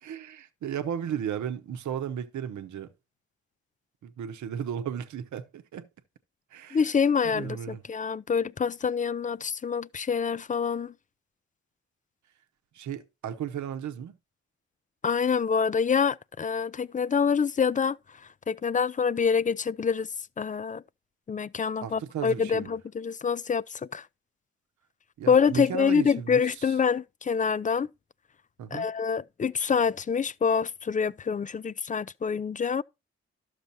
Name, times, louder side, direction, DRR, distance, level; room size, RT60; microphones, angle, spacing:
voice 1, 0.0-2.9 4.0-5.9 6.5-6.8 7.2-7.8 12.7-14.2 21.8-22.7 25.2-26.7 28.6-28.9, right 8 dB, 85° right, 0.9 m, -35 dB
voice 2, 6.7-10.9 15.0-20.1 20.4-20.8 21.3-24.1 25.3-27.9 28.7-32.8, left 6 dB, 30° left, 0.4 m, -26 dB
12.0 x 6.5 x 2.7 m
cardioid pair, 55°, 29 cm